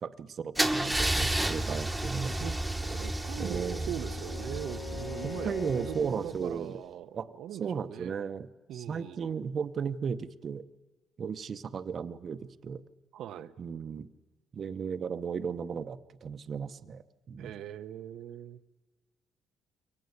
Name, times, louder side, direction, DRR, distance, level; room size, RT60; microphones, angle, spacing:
voice 1, 0.0-2.4 3.4-3.9 5.4-6.7 7.2-7.3 7.6-8.5 8.7-10.6 11.2-12.8 13.6-14.1 14.5-17.5, right 6 dB, 40° right, 11 dB, 0.8 m, -35 dB
Car / Engine starting / Idling, 0.6-6.4, right 1 dB, 5° right, 1.2 m, -32 dB
voice 2, 2.2-2.5 2.8-8.2 8.7-9.4 13.1-13.5 17.4-18.6, right 10 dB, 75° right, 9 dB, 0.7 m, -41 dB
Bowed string instrument, 2.4-6.3, left 4 dB, 60° left, 6.4 m, -43 dB
23.5 x 18.5 x 8.1 m, 1.3 s
cardioid pair, 125°, 0 cm